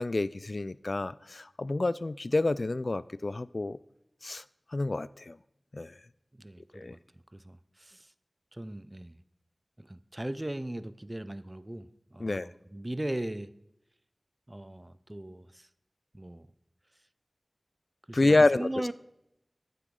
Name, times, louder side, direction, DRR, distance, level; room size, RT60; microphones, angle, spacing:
voice 1, 0.0-3.8 4.2-4.4 4.7-5.4 5.7-5.9 6.7-7.0 12.2-12.5 18.1-18.7, left 2 dB, 60° left, 0.3 m, -28 dB
voice 2, 6.3-7.0 7.3-8.1 8.5-9.2 9.8-13.5 14.5-15.7 16.1-16.5 18.1-18.9, right 1 dB, 25° right, 0.5 m, -39 dB
11.5 x 9.3 x 3.7 m
wide cardioid pair, 65°, 0 cm